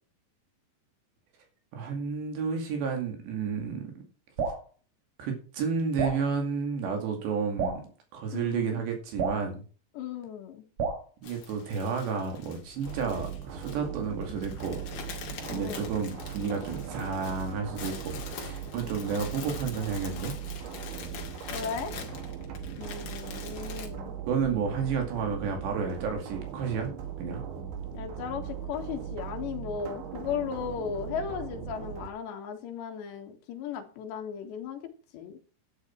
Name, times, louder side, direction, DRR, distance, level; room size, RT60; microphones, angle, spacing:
voice 1, 1.7-3.9 5.2-7.9 8.1-9.6 11.2-14.8 15.5-20.3 24.3-26.9 27.2-27.4, right 5 dB, 70° right, 3 dB, 4.4 m, -31 dB
Drip, 4.4-4.6 6.0-6.2 7.6-7.8 9.2-9.4 10.8-11.1, right 5 dB, 45° right, 5.8 m, -30 dB
voice 2, 8.3-8.8 9.9-10.7 15.5-15.9 21.5-22.0 22.8-24.2 27.9-35.4, left 7 dB, 75° left, 4 dB, 3.9 m, -36 dB
sound 1, 11.2-23.9, left 7 dB, 55° left, 3.2 m, -44 dB
sound 2, 12.8-32.1, right 8 dB, 90° right, 4.2 m, -39 dB
11.5 x 9.7 x 4.5 m, 0.38 s
omnidirectional pair, 5.2 m